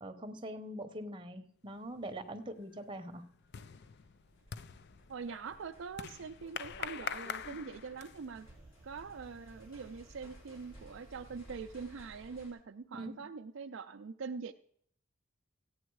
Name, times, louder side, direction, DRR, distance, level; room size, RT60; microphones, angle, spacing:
voice 1, 0.0-3.2 12.9-13.2, right 1 dB, 25° right, 6 dB, 0.9 m, -43 dB
sound 1, 1.9-2.3 2.6-8.4, left 7 dB, 50° left, 0.4 m, -44 dB
sound 2, 3.4-12.5, right 1 dB, 65° left, 3.9 m, -57 dB
voice 2, 5.1-8.5 8.8-14.5, right 5 dB, 60° right, 7 dB, 0.4 m, -44 dB
15.5 x 8.8 x 4.7 m, 0.66 s
head